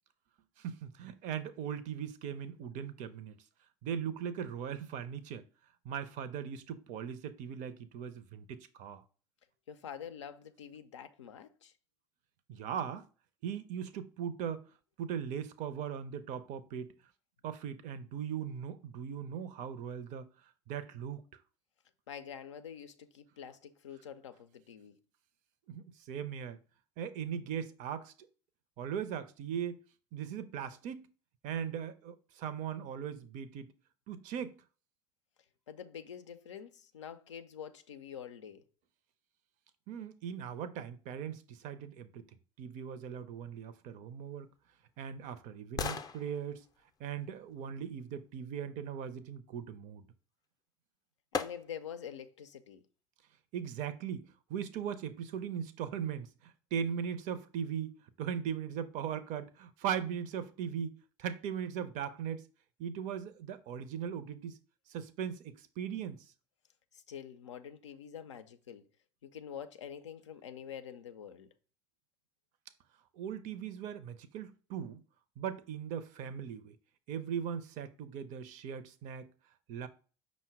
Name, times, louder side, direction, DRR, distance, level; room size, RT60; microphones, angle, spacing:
voice 1, 0.6-3.4 3.8-5.5 5.8-9.0 12.5-13.1 13.4-14.7 15.0-17.0 17.4-20.3 20.7-21.2 25.7-26.6 27.0-28.1 28.8-29.8 30.1-31.1 31.4-33.7 34.1-34.6 39.9-42.2 42.6-44.5 45.0-46.6 47.0-50.1 53.5-62.5 62.8-64.6 64.9-66.3 73.1-75.0 75.4-76.8 77.1-79.3 79.7-79.9, right 8 dB, 55° right, 0.5 m, -39 dB
voice 2, 9.7-11.7 22.1-25.0 35.7-38.6 51.3-52.8 66.9-68.9 69.2-71.5, left 8 dB, 85° left, 0.4 m, -46 dB
sound 1, 44.2-48.3 50.4-50.5 51.3-52.0 52.5-52.6, left 6 dB, 25° left, 0.4 m, -42 dB
5.5 x 2.1 x 4.5 m
hypercardioid pair, 65°, 15 cm